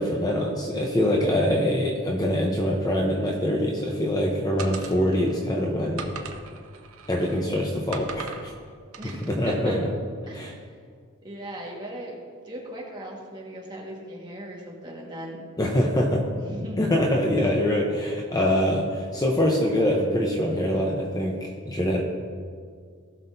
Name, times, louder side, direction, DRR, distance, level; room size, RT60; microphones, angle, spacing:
voice 1, 0.0-6.1 7.1-8.5 9.3-9.9 10.3-10.6 15.6-16.2 16.8-22.0, equal, 15° left, -1 dB, 0.7 m, -24 dB
sound 1, 4.6-5.4 6.0-7.4 7.9-8.5 8.9-9.4, right 5 dB, 75° right, 0.8 m, -39 dB
voice 2, 9.0-9.8 10.3-10.7 11.2-12.2 12.4-15.4 16.4-16.8, equal, 20° right, -3 dB, 1.6 m, -37 dB
18.0 x 6.2 x 2.7 m, 2.1 s
head